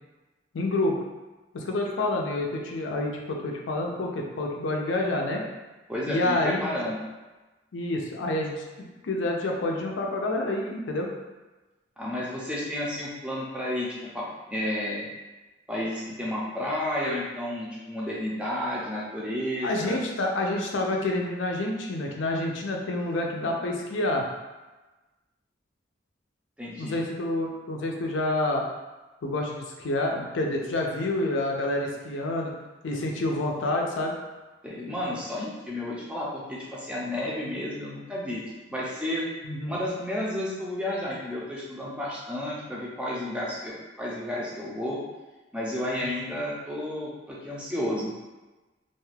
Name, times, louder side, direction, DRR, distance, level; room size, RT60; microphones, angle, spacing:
voice 1, 0.5-1.0 1.5-5.4 6.1-6.7 7.7-8.5 8.8-11.1 19.6-24.2 26.8-28.6 29.2-32.5 32.8-34.1 39.4-39.7, left 2 dB, 75° left, 1 dB, 0.5 m, -28 dB
voice 2, 5.9-7.0 12.0-15.1 15.7-20.0 26.6-27.0 34.6-38.4 38.7-39.3 39.7-45.0 45.5-48.1, left 1 dB, 5° right, -6 dB, 0.5 m, -32 dB
2.4 x 2.3 x 3.2 m, 1.2 s
head